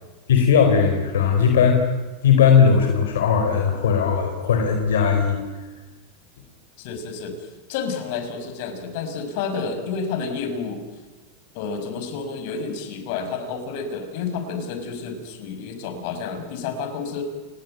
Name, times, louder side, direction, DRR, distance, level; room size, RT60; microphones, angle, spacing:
voice 1, 0.3-1.8 2.2-5.4, left 6 dB, 90° left, 4 dB, 4.2 m, -18 dB
voice 2, 6.8-10.8 11.5-17.2, left 5 dB, 65° left, 7 dB, 6.3 m, -30 dB
29.5 x 19.5 x 9.4 m, 1.2 s
supercardioid pair, 115°, 0 cm